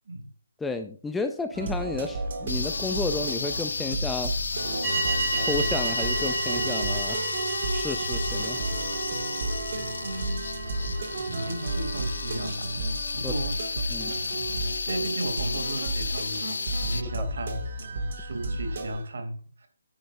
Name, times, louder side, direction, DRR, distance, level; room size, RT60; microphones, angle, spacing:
voice 1, 0.6-4.3 5.3-7.2 7.7-8.6 13.2-13.3 13.9-14.2 17.2-17.3, left 3 dB, 5° left, 7 dB, 0.4 m, -32 dB
sound 1, 1.5-19.0, right 2 dB, 40° right, 2.0 m, -32 dB
sound 2, 2.5-17.0, left 4 dB, 65° left, 0.6 m, -33 dB
sound 3, 4.8-12.5, right 2 dB, 10° right, 2.9 m, -32 dB
voice 2, 10.0-10.5 11.3-12.7 13.1-13.6 14.9-17.6 18.2-19.7, right 1 dB, 60° right, 6 dB, 2.8 m, -35 dB
9.8 x 9.5 x 2.6 m, 0.43 s
hypercardioid pair, 175°, 0 cm